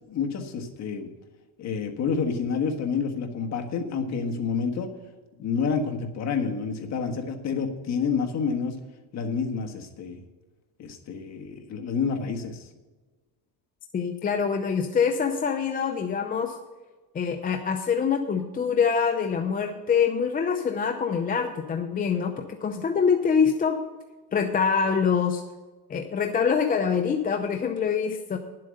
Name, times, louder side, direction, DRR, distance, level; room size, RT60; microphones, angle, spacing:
voice 1, 0.1-1.1 1.6-4.9 5.4-8.8 9.1-10.2 10.8-12.7, left 5 dB, 40° left, 3 dB, 1.4 m, -28 dB
voice 2, 13.9-16.6 17.1-23.8 24.3-25.4 25.9-28.4, left 6 dB, 20° left, 5 dB, 0.6 m, -25 dB
11.0 x 7.7 x 6.4 m, 1.2 s
cardioid pair, 150°, 41 cm